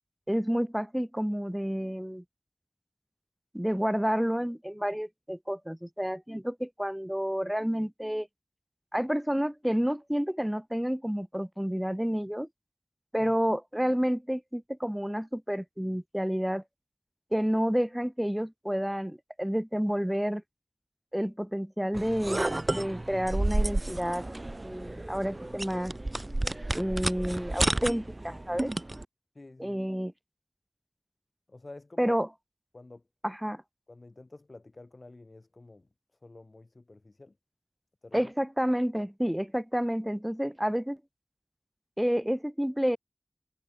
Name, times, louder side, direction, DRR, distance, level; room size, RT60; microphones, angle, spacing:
voice 1, 0.3-2.2 3.5-8.3 8.9-12.5 13.1-16.6 17.3-20.4 21.1-24.2 24.6-25.9 26.8-28.7 29.6-30.1 32.0-32.3 33.2-33.6 38.1-41.0 42.0-43.0, equal, 10° right, 0.9 m, -30 dB
sound 1, 21.9-29.0, right 2 dB, 55° right, 1.0 m, -31 dB
voice 2, 29.3-29.8 31.5-32.2 32.7-33.0 33.9-35.9 36.2-37.4 38.0-38.2, left 2 dB, 85° left, 2.1 m, -49 dB
wide cardioid pair, 45°, 0 cm